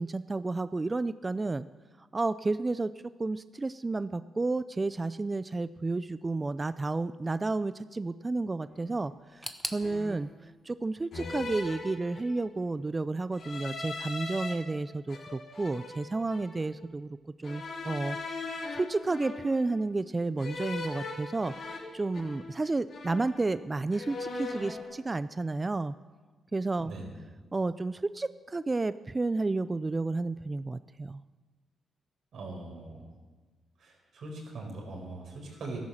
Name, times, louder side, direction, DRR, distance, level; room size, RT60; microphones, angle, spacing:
voice 1, 0.0-1.6 2.1-2.9 3.2-18.4 18.7-21.5 21.9-25.9 26.5-26.9 27.5-31.2, right 3 dB, 25° right, 14 dB, 0.4 m, -31 dB
sound 1, 8.7-8.9 9.8-10.3 11.1-12.5 13.3-14.5 15.1-16.6 17.4-19.8 20.4-22.6 22.9-23.6 23.9-24.8, left 3 dB, 60° left, 3.6 m, -40 dB
sound 2, 9.4-12.3 12.5-13.4 13.7-13.8 14.6-14.7, right 1 dB, 10° right, 1.1 m, -44 dB
voice 2, 26.8-27.1 32.3-33.1 33.8-35.8, right 2 dB, 70° right, 0 dB, 5.0 m, -41 dB
13.5 x 11.5 x 7.3 m, 1.3 s
cardioid pair, 85°, 0 cm